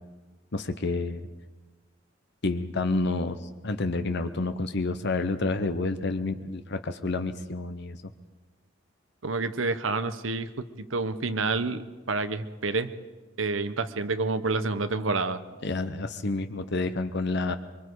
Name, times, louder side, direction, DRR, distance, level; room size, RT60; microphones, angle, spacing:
voice 1, 0.5-1.3 2.4-3.4 3.6-8.0 15.6-17.5, left 3 dB, 60° left, 9 dB, 0.9 m, -29 dB
voice 2, 9.2-10.5 10.9-11.8 12.1-12.9 13.4-15.4, right 3 dB, 85° right, 10 dB, 1.1 m, -28 dB
24.0 x 23.5 x 4.8 m, 1.3 s
head